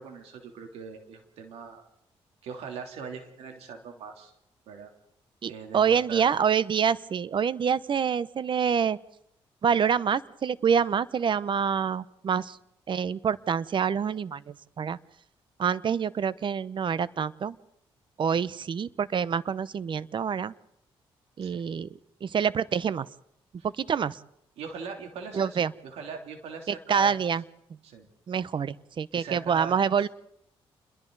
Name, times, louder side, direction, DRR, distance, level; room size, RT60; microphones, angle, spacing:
voice 1, 0.0-1.8 2.4-4.3 4.7-4.9 5.5-6.4 21.4-21.6 23.6-23.7 24.6-27.1 27.8-28.1 29.1-30.1, right 5 dB, 90° right, 3 dB, 3.2 m, -41 dB
voice 2, 5.4-9.0 9.6-12.6 12.9-15.0 15.6-17.6 18.2-20.5 21.4-21.9 22.2-23.1 23.8-24.2 25.3-25.7 26.7-27.4 28.3-30.1, right 7 dB, 55° right, 18 dB, 0.8 m, -26 dB
29.0 x 22.0 x 4.0 m, 0.76 s
cardioid pair, 75°, 10 cm